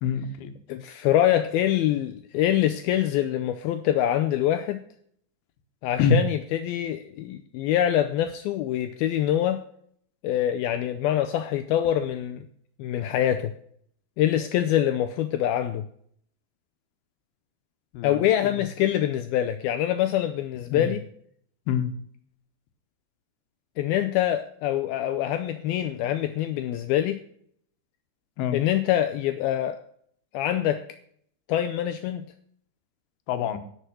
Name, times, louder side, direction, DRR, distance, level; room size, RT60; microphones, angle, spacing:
voice 1, 0.0-0.5 6.0-6.2 17.9-18.6 20.7-20.9 21.7-21.9 28.4-28.6 33.3-33.6, left 6 dB, 70° left, 2.8 m, -25 dB
voice 2, 0.7-4.8 5.8-9.6 10.2-12.5 12.8-13.5 14.2-15.9 18.0-21.0 23.8-27.2 28.5-29.8 30.3-30.8 31.5-32.2, left 11 dB, 90° left, 2.1 m, -25 dB
12.0 x 6.8 x 6.1 m
omnidirectional pair, 5.0 m